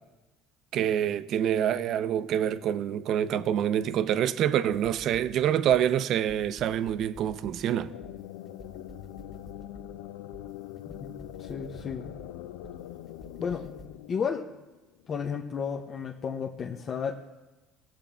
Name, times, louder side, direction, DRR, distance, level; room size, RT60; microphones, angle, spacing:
voice 1, 0.7-7.9, right 10 dB, 60° right, 0.5 m, -26 dB
sound 1, 4.7-14.0, right 1 dB, 25° left, 1.2 m, -51 dB
Creature in da cave, 7.4-15.1, left 13 dB, 85° left, 0.4 m, -43 dB
voice 2, 11.0-12.1 13.4-13.7 14.1-14.5 15.1-17.1, left 6 dB, 45° left, 0.8 m, -33 dB
17.0 x 7.3 x 3.5 m
supercardioid pair, 75°, 0 cm